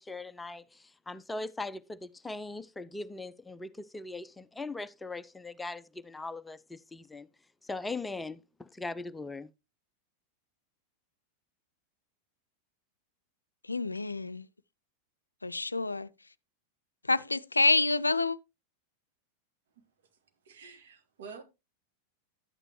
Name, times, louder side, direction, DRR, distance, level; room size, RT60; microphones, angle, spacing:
voice 1, 0.0-7.3 7.6-9.5, left 2 dB, 10° left, 0.5 m, -40 dB
voice 2, 13.7-14.5 15.4-16.1 17.1-18.4, left 3 dB, 80° left, 0.4 m, -27 dB
voice 3, 20.4-21.4, right 5 dB, 60° right, 1.7 m, -47 dB
11.0 x 8.8 x 3.0 m
figure-of-eight pair, 90°, 0 cm